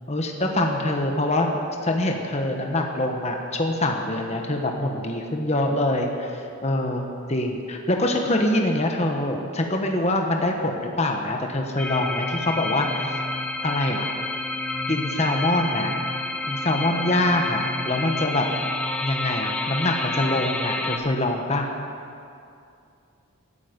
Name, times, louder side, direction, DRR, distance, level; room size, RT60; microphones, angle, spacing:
voice 1, 0.1-13.2 13.6-14.0 14.9-16.0 16.5-18.5 19.0-21.7, left 1 dB, 30° left, 2 dB, 1.2 m, -24 dB
sound 1, 11.8-21.0, left 2 dB, 5° left, 0.8 m, -29 dB
18.5 x 12.5 x 5.3 m, 2.5 s
head